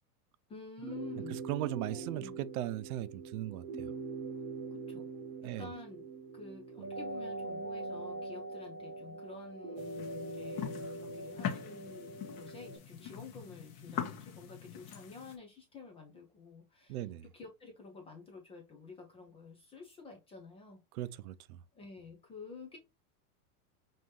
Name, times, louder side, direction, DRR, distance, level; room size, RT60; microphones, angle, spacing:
voice 1, 0.5-1.4 1.9-2.4 4.4-4.5 4.7-5.1 5.4-6.0 6.3-20.8 21.7-22.8, left 4 dB, 15° left, 0.3 m, -50 dB
sound 1, 0.8-12.8, right 3 dB, 25° right, 0.7 m, -42 dB
voice 2, 1.3-3.9 5.4-5.7 16.9-17.2 20.9-21.6, right 14 dB, 70° right, 0.6 m, -38 dB
sound 2, 9.8-15.4, left 9 dB, 45° left, 1.1 m, -42 dB
5.3 x 2.7 x 3.0 m
supercardioid pair, 125°, 46 cm